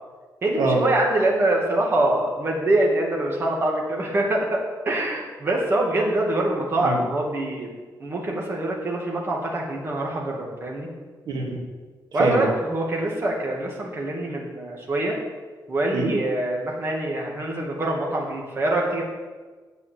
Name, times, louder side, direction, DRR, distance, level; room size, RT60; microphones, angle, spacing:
voice 1, 0.4-7.7 8.0-10.9 12.1-15.2 15.7-19.0, right 1 dB, 35° right, -2 dB, 2.4 m, -24 dB
voice 2, 11.3-11.6 12.2-12.5 15.9-16.1, right 3 dB, 75° right, 0 dB, 2.4 m, -23 dB
9.4 x 8.5 x 8.6 m, 1.4 s
wide cardioid pair, 160°, 7 cm